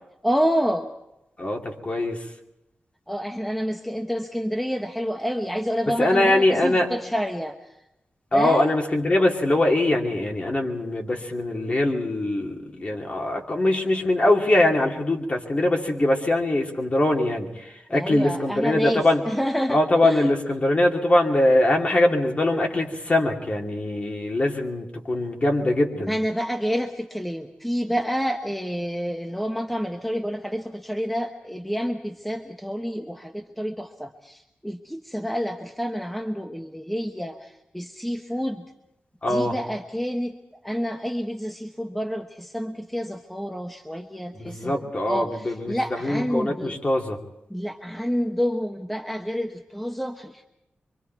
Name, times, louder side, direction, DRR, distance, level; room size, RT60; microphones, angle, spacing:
voice 1, 0.2-0.9 3.1-7.8 8.3-8.7 17.9-20.3 26.0-38.7 39.3-40.4 40.6-46.8 47.5-50.5, equal, 5° left, 4 dB, 1.1 m, -28 dB
voice 2, 1.4-2.3 6.0-6.9 8.3-19.2 19.7-26.2 39.2-39.5 44.3-47.2, left 1 dB, 35° left, 1 dB, 2.7 m, -22 dB
25.0 x 24.5 x 4.6 m, 0.87 s
wide cardioid pair, 115°, 4 cm